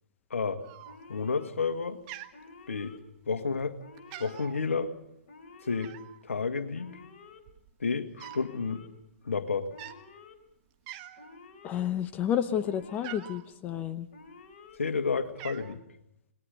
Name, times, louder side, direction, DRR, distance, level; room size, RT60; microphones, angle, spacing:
voice 1, 0.3-0.7 1.1-2.0 2.7-3.0 3.3-3.8 4.2-5.0 5.6-5.9 6.2-7.0 7.8-8.8 9.2-9.7 14.8-15.8, left 5 dB, 70° left, 8 dB, 2.1 m, -30 dB
Cat, 0.6-1.3 1.6-1.8 2.1-3.1 3.6-3.7 4.0-4.6 5.8-6.2 7.0-7.1 7.3-8.5 8.8-9.0 9.7-10.0 10.5-10.6 10.9-11.4 11.8-13.5 14.3-14.8 15.1-15.7, right 13 dB, 35° right, 1.6 m, -45 dB
Alarm, 0.8-1.5 2.3-3.0 3.8-4.5 5.3-5.9 6.7-7.4 8.2-8.9 9.7-10.3 11.2-11.8 12.6-13.3 14.1-14.8, left 4 dB, 45° left, 3.4 m, -51 dB
voice 2, 11.6-14.1, left 10 dB, 20° left, 10 dB, 0.9 m, -30 dB
27.5 x 20.5 x 5.3 m, 0.80 s
figure-of-eight pair, 125°, 7 cm